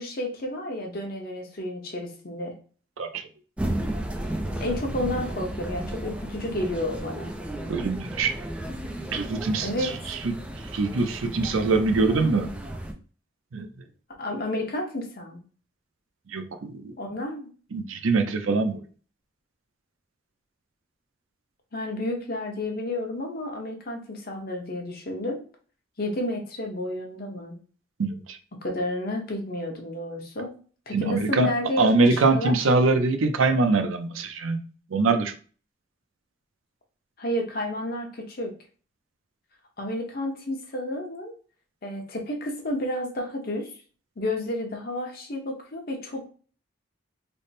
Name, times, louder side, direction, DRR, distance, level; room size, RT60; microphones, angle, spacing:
voice 1, 0.0-2.5 4.6-7.3 9.6-10.2 14.2-15.4 17.0-17.5 21.7-25.4 26.0-27.6 28.6-30.5 30.9-32.5 37.2-38.5 39.8-41.3 41.8-43.7 44.2-46.2, left 1 dB, 50° left, 0.8 m, -31 dB
voice 2, 3.0-3.3 7.7-8.3 9.1-10.3 10.7-12.5 13.5-13.7 16.3-16.9 17.7-18.8 28.0-28.4 30.9-31.5 31.8-34.6 34.9-35.3, right 3 dB, 90° right, 0.5 m, -23 dB
sound 1, 3.6-12.9, right 1 dB, 5° right, 0.3 m, -33 dB
3.4 x 2.0 x 4.1 m
head